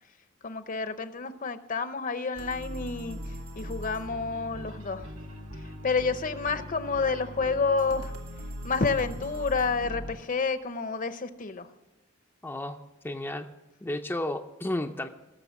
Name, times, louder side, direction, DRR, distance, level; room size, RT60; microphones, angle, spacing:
voice 1, 0.4-3.2 3.5-5.1 5.8-8.1 8.6-11.7, left 4 dB, 40° left, 11 dB, 0.8 m, -29 dB
sound 1, 2.3-10.1, equal, 85° right, 2.0 m, -40 dB
voice 2, 12.4-13.5 13.8-15.1, left 1 dB, 10° left, 3 dB, 0.5 m, -33 dB
17.5 x 7.0 x 5.9 m, 1.0 s
head